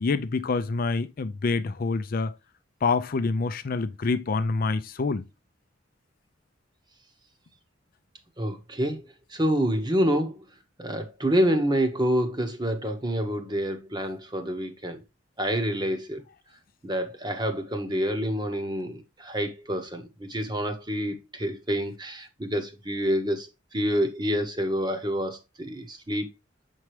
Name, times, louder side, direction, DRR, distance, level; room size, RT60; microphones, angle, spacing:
voice 1, 0.0-2.3 2.8-5.3, left 4 dB, 50° left, 0.4 m, -26 dB
voice 2, 8.4-9.0 9.3-10.5 10.8-15.0 15.4-16.2 16.8-23.5 23.7-26.3, equal, 25° right, 1.0 m, -27 dB
7.2 x 4.5 x 3.1 m
head